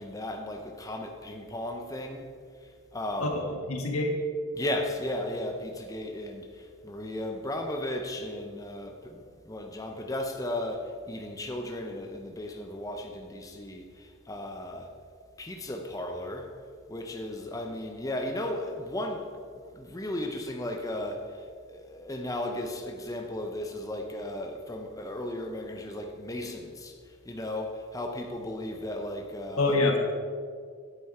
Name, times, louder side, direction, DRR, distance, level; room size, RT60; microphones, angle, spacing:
voice 1, 0.0-2.2 2.9-3.4 4.5-14.9 15.4-16.5 16.9-19.3 19.7-21.3 21.7-26.9 27.3-29.8, left 1 dB, 15° left, 0.6 m, -35 dB
voice 2, 3.2-4.1 29.5-30.0, left 2 dB, 90° left, 1.5 m, -26 dB
9.4 x 8.1 x 4.2 m
head